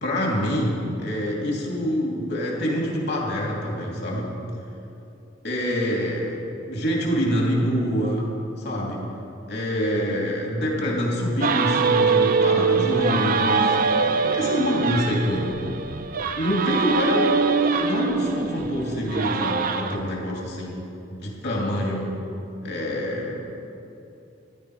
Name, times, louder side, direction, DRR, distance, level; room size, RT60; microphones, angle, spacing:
voice 1, 0.0-4.3 5.4-8.3 8.6-9.0 9.5-13.8 14.3-15.5 16.4-17.4 17.6-20.8 21.1-22.1 22.6-23.5, equal, 60° left, -2 dB, 2.8 m, -26 dB
sound 1, 11.4-20.0, right 4 dB, 45° right, 0.6 m, -23 dB
15.5 x 11.0 x 4.9 m, 2.8 s
head